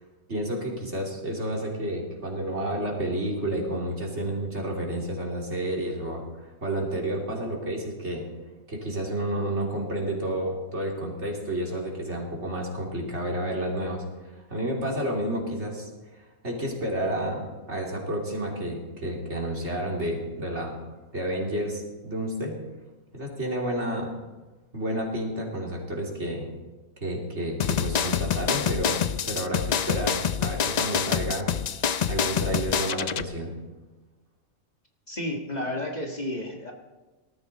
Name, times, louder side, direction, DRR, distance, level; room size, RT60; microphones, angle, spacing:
voice 1, 0.3-8.2 8.7-14.0 14.5-15.9 16.4-20.8 21.1-22.6 23.1-24.1 24.7-26.5 27.0-29.0 29.2-31.5 32.1-33.5, right 1 dB, 55° right, -1 dB, 3.4 m, -30 dB
sound 1, 27.6-33.2, left 7 dB, 65° left, 0.4 m, -26 dB
voice 2, 35.1-36.7, left 1 dB, 30° left, 1 dB, 1.9 m, -31 dB
19.0 x 13.5 x 4.2 m, 1.2 s
omnidirectional pair, 1.4 m